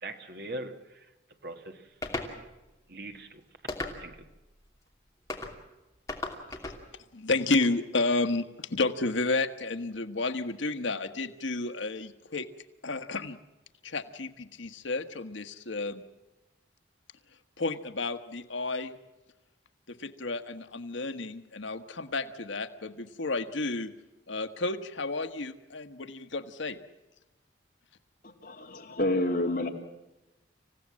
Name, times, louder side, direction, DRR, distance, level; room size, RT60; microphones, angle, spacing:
voice 1, 0.0-1.1 1.4-1.9 2.9-3.4 4.0-4.3, right 2 dB, 55° right, 1.7 m, -41 dB
sound 1, 2.0-2.3 3.7-4.2 5.3-5.5 6.1-6.8, left 2 dB, 15° left, 2.8 m, -35 dB
voice 2, 7.1-12.5 12.8-13.4 13.8-16.0 17.6-19.0 19.9-23.9 24.3-26.8, left 3 dB, 85° left, 1.3 m, -31 dB
voice 3, 28.2-29.7, left 1 dB, 50° left, 2.7 m, -29 dB
27.5 x 16.0 x 7.6 m
head